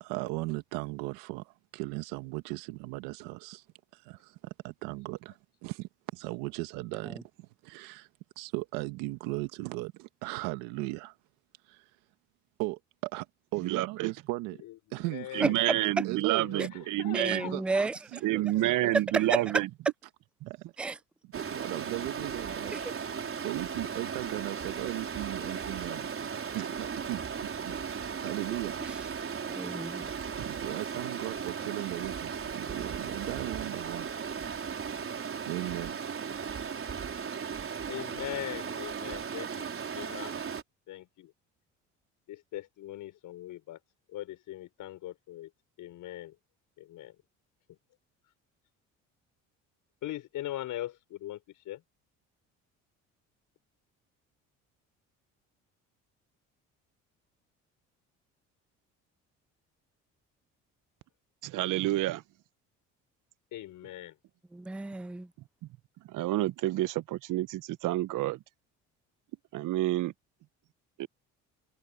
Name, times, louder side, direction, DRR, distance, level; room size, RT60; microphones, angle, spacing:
voice 1, 0.0-3.6 3.9-8.1 8.4-11.1 11.7-11.9 12.6-13.3 13.5-14.6 14.9-15.6 16.0-16.9 17.5-19.2 20.5-20.6 21.2-22.8 23.3-26.1 26.3-28.9 29.2-29.4 30.6-34.1 34.8-36.0, right 21 dB, 85° right, 1.6 m, -37 dB
voice 2, 13.6-14.1 15.3-17.4 18.2-19.7 20.4-20.5 30.4-30.6 61.4-62.2 66.1-68.4 69.5-70.1 71.0-71.1, right 16 dB, 65° right, 0.9 m, -29 dB
voice 3, 14.6-17.9 37.9-40.4 40.9-41.3 42.3-43.8 44.1-45.5 45.8-46.4 46.8-47.2 47.7-47.8 48.2-48.3 50.0-51.8 63.5-64.2, left 14 dB, 70° left, 6.2 m, -41 dB
voice 4, 17.1-17.9 19.1-19.4 20.8-21.0 22.7-22.8 29.5-30.1 64.5-65.3, right 3 dB, 5° right, 0.4 m, -31 dB
Stream, 21.3-40.6, right 6 dB, 40° right, 4.4 m, -36 dB
supercardioid pair, 75°, 33 cm